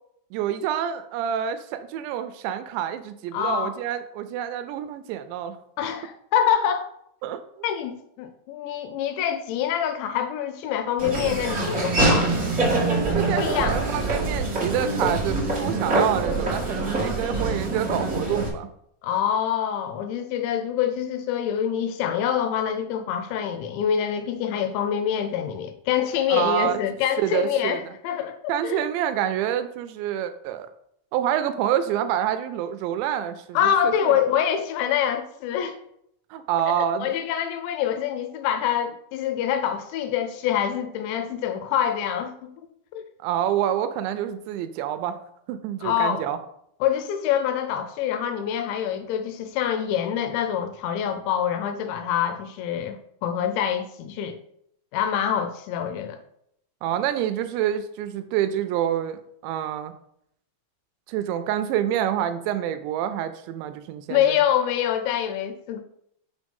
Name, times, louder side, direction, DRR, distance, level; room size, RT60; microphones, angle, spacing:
voice 1, 0.3-5.6 7.2-7.4 13.1-18.7 26.3-26.8 27.2-27.8 28.5-30.7 31.1-34.2 36.3-37.1 43.2-45.2 45.5-46.4 56.8-59.9 61.1-64.3, right 10 dB, 85° right, 2.8 m, -27 dB
voice 2, 3.3-3.7 5.8-6.9 7.6-12.3 13.4-13.8 19.0-28.8 33.5-35.8 36.8-42.5 42.9-43.0 45.8-46.2 46.8-53.0 53.2-54.4 54.9-56.2 64.1-65.8, left 9 dB, 80° left, 2.9 m, -25 dB
Laughter / Walk footsteps, 11.0-18.5, right 2 dB, 40° right, 1.0 m, -24 dB
6.2 x 6.2 x 5.3 m
omnidirectional pair, 5.3 m